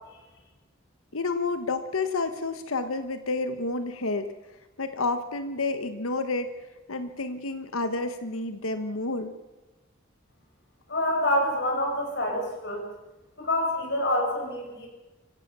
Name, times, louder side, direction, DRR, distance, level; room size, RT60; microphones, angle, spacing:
voice 1, 1.1-4.3 4.8-6.5 6.9-9.3, left 3 dB, 85° left, 9 dB, 1.3 m, -30 dB
voice 2, 10.9-12.9 13.4-14.9, left 1 dB, 55° left, 1 dB, 6.7 m, -27 dB
25.0 x 16.5 x 6.9 m, 1.1 s
head